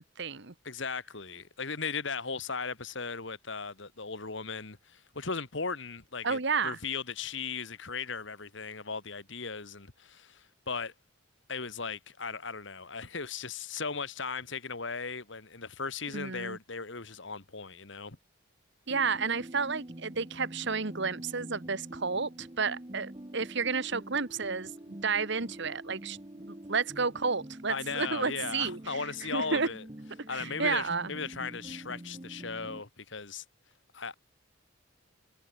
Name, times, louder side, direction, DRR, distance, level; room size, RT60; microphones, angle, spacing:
voice 1, 0.0-0.5 6.2-6.8 16.1-16.6 18.9-29.0 29.3-29.7 30.3-31.1, right 5 dB, 55° right, 1.4 m, -31 dB
voice 2, 0.6-10.9 11.5-18.2 27.7-29.8 30.3-33.4 33.9-34.1, left 5 dB, 60° left, 1.8 m, -37 dB
sound 1, 18.9-32.8, right 1 dB, 25° right, 1.1 m, -46 dB
head